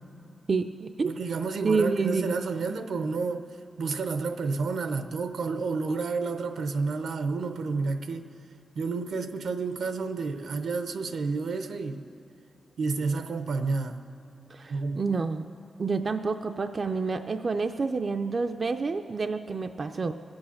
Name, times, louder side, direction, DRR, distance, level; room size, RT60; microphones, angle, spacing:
voice 1, 0.5-1.1 1.6-2.4 14.5-15.4 15.8-20.1, right 4 dB, 45° right, 7 dB, 0.4 m, -28 dB
voice 2, 1.0-3.5 3.8-8.3 8.7-12.0 12.8-14.0 14.7-15.0, right 4 dB, 85° right, 8 dB, 0.7 m, -30 dB
20.5 x 7.9 x 7.1 m, 2.9 s
cardioid pair, 95°, 0 cm